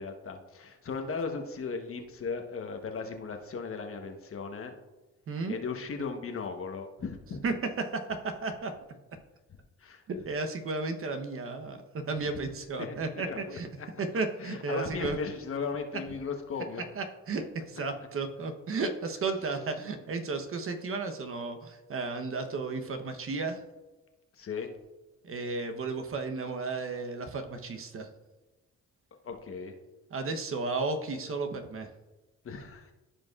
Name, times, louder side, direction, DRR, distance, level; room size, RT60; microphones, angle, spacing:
voice 1, 0.0-4.7 5.5-7.4 9.8-10.0 12.8-12.9 13.2-13.9 14.4-16.8 24.4-24.7 29.2-29.7 32.4-32.9, left 5 dB, 45° left, 5 dB, 1.1 m, -37 dB
voice 2, 5.3-5.6 7.4-8.7 10.1-13.7 14.0-15.2 16.9-23.6 25.2-28.1 30.1-31.9, right 3 dB, 45° right, 5 dB, 1.0 m, -33 dB
15.0 x 5.1 x 2.4 m, 1.1 s
cardioid pair, 90°, 30 cm